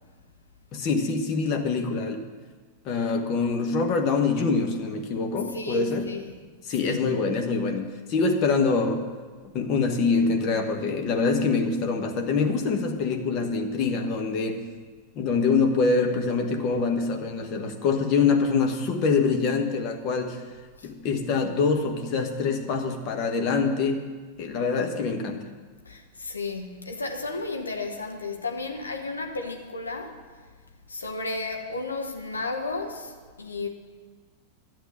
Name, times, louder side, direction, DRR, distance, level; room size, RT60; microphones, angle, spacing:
voice 1, 0.7-2.2 2.8-6.1 6.6-9.1 9.5-14.6 15.1-20.4 20.8-24.1 24.4-25.5, left 4 dB, 40° left, 4 dB, 1.2 m, -25 dB
voice 2, 5.5-6.3 6.8-7.1 20.8-20.9 25.8-30.2 30.9-33.7, left 3 dB, 75° left, 3 dB, 1.1 m, -33 dB
11.5 x 7.6 x 7.4 m, 1.5 s
figure-of-eight pair, 90°, 0 cm